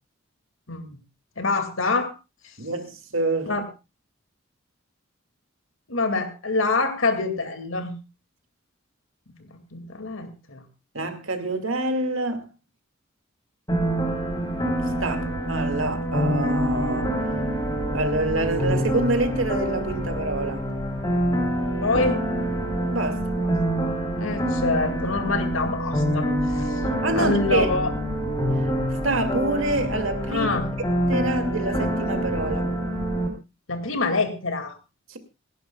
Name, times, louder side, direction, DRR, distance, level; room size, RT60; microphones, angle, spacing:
voice 1, 1.4-2.1 3.5-3.7 5.9-8.0 9.3-10.6 21.8-22.2 23.3-23.5 23.8-26.8 27.2-27.9 30.3-30.7 33.7-34.7, left 3 dB, 80° left, 2.3 m, -26 dB
voice 2, 2.6-3.6 10.9-12.5 14.8-17.2 17.9-20.7 22.9-23.2 27.0-27.7 29.0-30.5 31.1-32.7 35.1-35.2, right 2 dB, 80° right, 2.4 m, -26 dB
sound 1, 13.7-33.3, equal, 20° left, 3.5 m, -26 dB
28.0 x 11.5 x 2.3 m
head